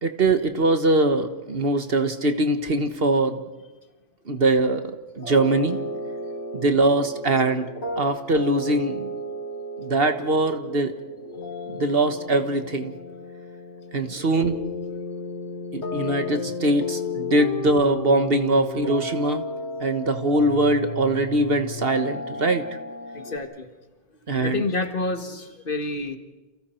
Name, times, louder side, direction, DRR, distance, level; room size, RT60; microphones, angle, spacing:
voice 1, 0.0-3.4 4.3-5.8 6.5-7.7 8.0-9.1 9.8-10.9 11.7-12.9 13.9-14.6 15.7-19.4 19.8-22.6 24.3-24.6, right 2 dB, 55° right, 8 dB, 1.6 m, -22 dB
sound 1, 5.2-23.4, left 2 dB, 75° left, 3.6 m, -33 dB
voice 2, 14.1-14.4 23.1-23.7 24.4-26.2, left 3 dB, 50° left, 7 dB, 1.7 m, -29 dB
30.0 x 28.5 x 4.5 m, 1.2 s
omnidirectional pair, 1.2 m